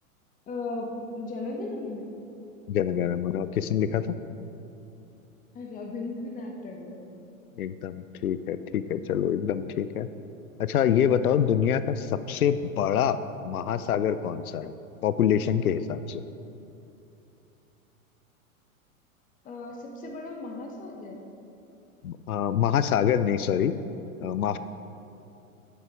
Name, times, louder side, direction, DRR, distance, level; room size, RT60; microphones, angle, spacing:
voice 1, 0.5-2.1 5.5-7.0 19.4-21.2, left 2 dB, 20° left, 2 dB, 1.0 m, -37 dB
voice 2, 2.7-4.0 7.6-10.1 10.6-14.7 15.0-16.2 22.0-23.7 24.2-24.6, left 9 dB, 80° left, 13 dB, 0.5 m, -26 dB
9.6 x 6.8 x 4.8 m, 2.8 s
figure-of-eight pair, 100°, 42 cm